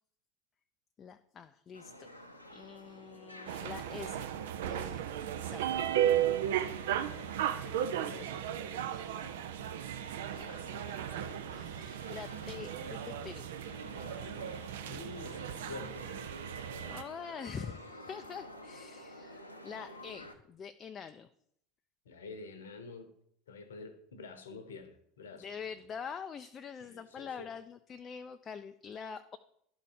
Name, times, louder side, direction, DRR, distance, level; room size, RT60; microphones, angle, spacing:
voice 1, 1.0-4.3 4.6-5.1 5.4-5.6 8.9-9.3 10.3-11.1 11.5-13.5 16.9-21.3 25.3-29.4, left 6 dB, 30° left, 8 dB, 0.4 m, -45 dB
sound 1, 1.7-20.3, left 1 dB, 85° left, 0.6 m, -50 dB
sound 2, 3.5-17.0, right 11 dB, 65° right, 0.5 m, -35 dB
voice 2, 6.4-7.3 7.6-8.6 14.9-16.1 22.0-23.1 23.5-25.5 26.8-27.5, left 4 dB, 70° left, 10 dB, 0.9 m, -48 dB
11.5 x 4.1 x 4.8 m, 0.70 s
figure-of-eight pair, 75°, 0 cm